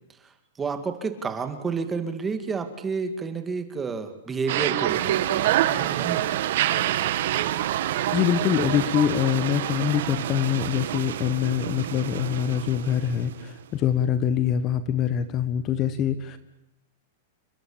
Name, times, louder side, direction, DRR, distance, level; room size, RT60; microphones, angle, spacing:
voice 1, 0.6-6.4, right 5 dB, 10° right, 8 dB, 2.3 m, -30 dB
sound 1, 4.5-11.0, right 14 dB, 55° right, 1.6 m, -26 dB
sound 2, 4.9-13.9, right 10 dB, 75° right, 2.2 m, -34 dB
voice 2, 8.1-16.4, left 9 dB, 25° left, 12 dB, 1.4 m, -24 dB
29.5 x 21.0 x 8.9 m, 0.83 s
supercardioid pair, 170°, 0 cm